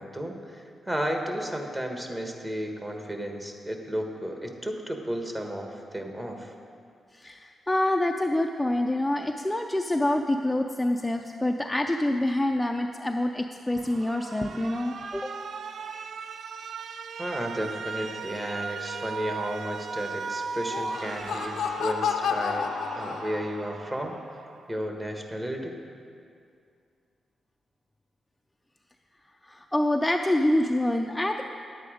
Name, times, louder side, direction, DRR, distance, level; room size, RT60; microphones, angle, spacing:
voice 1, 0.0-6.5 17.2-24.1 24.7-25.7, equal, 20° right, 3 dB, 1.3 m, -33 dB
voice 2, 7.1-15.3 29.5-31.4, left 1 dB, 10° left, 3 dB, 0.4 m, -26 dB
Alarm, 13.7-24.7, right 5 dB, 65° right, 0.3 m, -38 dB
Laughter, 20.6-23.7, left 7 dB, 90° left, 0.5 m, -31 dB
10.0 x 8.4 x 4.9 m, 2.3 s
cardioid pair, 85°, 0 cm